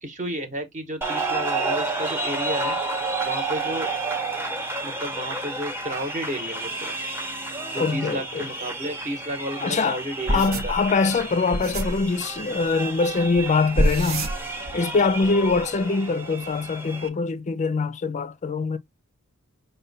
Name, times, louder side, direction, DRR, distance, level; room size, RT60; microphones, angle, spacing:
voice 1, 0.0-2.8 3.2-3.9 4.8-7.0 7.7-10.7, right 1 dB, 35° right, 1.0 m, -32 dB
sound 1, 1.0-17.1, right 3 dB, 10° right, 0.7 m, -31 dB
voice 2, 7.8-8.4 9.6-10.0 10.3-14.3 14.7-18.8, left 4 dB, 30° left, 0.4 m, -23 dB
sound 2, 10.3-12.1 13.3-13.5 13.8-14.8 15.1-15.6, right 1 dB, 65° right, 0.9 m, -26 dB
5.4 x 2.2 x 3.9 m
head